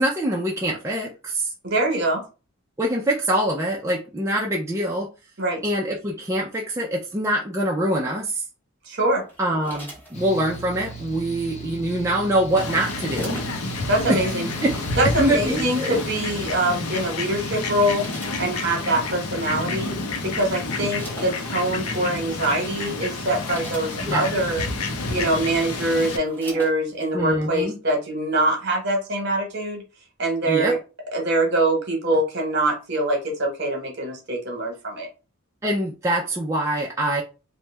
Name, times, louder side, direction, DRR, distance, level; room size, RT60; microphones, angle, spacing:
voice 1, 0.0-1.5 2.8-5.1 5.6-8.4 9.4-13.4 14.1-14.2 14.6-14.7 15.2-16.0 24.0-24.3 27.1-27.8 30.5-30.8 35.6-37.2, right 1 dB, 15° right, -2 dB, 0.3 m, -24 dB
voice 2, 1.6-2.2 5.4-5.6 8.9-9.2 13.9-14.5 15.0-18.1 18.4-19.9 20.2-24.6 25.1-29.8 30.2-30.8 31.1-35.1, right 1 dB, 50° right, 2 dB, 1.0 m, -24 dB
sound 1, 9.3-10.7 12.0-13.9 14.9-15.1 16.8-17.1 17.6-19.0 19.8-19.9 20.2-21.7 22.4-22.6 23.0-24.5 25.2-25.3 25.6-27.1 27.5-27.6, right 1 dB, 10° left, 0.9 m, -43 dB
Mechanical fan, 10.1-16.6, right 4 dB, 30° left, 0.6 m, -38 dB
Fowl, 12.6-26.2, left 3 dB, 85° left, 0.6 m, -29 dB
2.9 x 2.1 x 3.2 m, 0.32 s
head